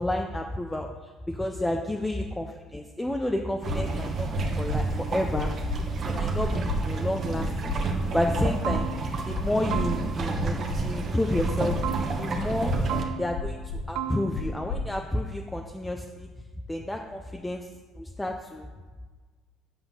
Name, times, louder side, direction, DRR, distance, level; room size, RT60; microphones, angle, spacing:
voice 1, 0.0-5.7 6.1-7.8 8.1-8.9 9.2-11.8 12.2-12.7 13.2-13.6 13.9-16.3 16.7-17.7 18.0-18.7, left 1 dB, 10° left, 3 dB, 0.5 m, -30 dB
sound 1, 3.6-13.0, right 3 dB, 40° right, 1.2 m, -30 dB
sound 2, 3.7-3.8 4.3-4.8 5.3-5.8 6.3-6.8 7.3-7.8 8.3-8.8 9.3-9.8 10.3-10.8 11.3-11.8 12.3-12.8 13.3-13.8 14.3-14.8, left 5 dB, 70° left, 2.3 m, -33 dB
sound 3, 8.3-8.4 8.6-9.3 9.7-10.4 11.8-12.5 12.9-13.6 14.0-14.4, right 9 dB, 75° right, 0.6 m, -34 dB
8.1 x 5.7 x 5.6 m, 1.4 s
cardioid pair, 125°, 0 cm